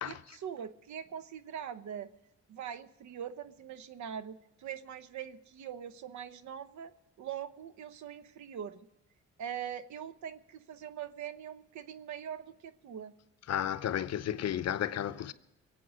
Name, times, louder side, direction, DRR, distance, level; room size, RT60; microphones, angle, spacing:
voice 1, 0.0-2.1 2.5-6.9 7.2-8.9 9.4-13.1, right 9 dB, 70° right, 1.0 m, -42 dB
voice 2, 13.5-15.3, left 10 dB, 55° left, 0.7 m, -33 dB
22.0 x 8.7 x 6.3 m
cardioid pair, 90°, 30 cm